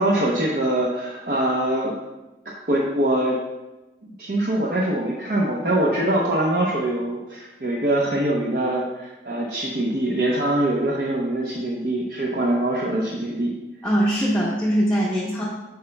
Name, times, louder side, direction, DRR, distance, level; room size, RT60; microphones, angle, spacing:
voice 1, 0.0-1.9 2.4-3.4 4.0-13.5, right 1 dB, 50° right, -3 dB, 0.7 m, -23 dB
voice 2, 13.8-15.4, equal, 5° left, -7 dB, 0.7 m, -21 dB
9.1 x 5.7 x 2.2 m, 1.1 s
head